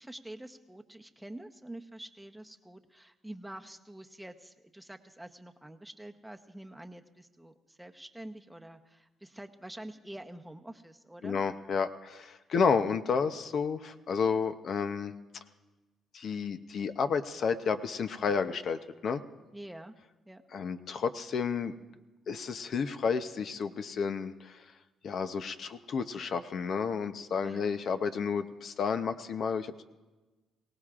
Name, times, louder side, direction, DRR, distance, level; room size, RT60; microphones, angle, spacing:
voice 1, 0.0-11.4 19.5-19.9 20.3-20.4 27.4-27.6, right 1 dB, 5° right, 6 dB, 0.8 m, -47 dB
voice 2, 11.2-15.1 16.1-19.2 20.5-21.7 22.3-24.6 25.0-29.8, left 6 dB, 60° left, 10 dB, 0.7 m, -31 dB
23.5 x 17.5 x 2.5 m, 1.2 s
cardioid pair, 90°, 0 cm